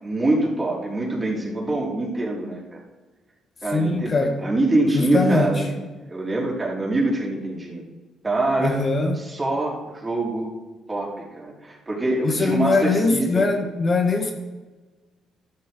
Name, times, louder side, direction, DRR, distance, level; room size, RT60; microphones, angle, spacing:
voice 1, 0.0-2.8 3.6-4.1 4.4-5.7 6.1-7.8 8.2-8.8 9.2-10.5 10.9-13.5, right 2 dB, 25° right, -4 dB, 4.0 m, -24 dB
voice 2, 3.7-4.4 4.9-5.7 8.6-9.2 12.2-14.3, left 3 dB, 40° left, 3 dB, 1.5 m, -21 dB
13.0 x 11.5 x 3.9 m, 1.3 s
cardioid pair, 90°, 0 cm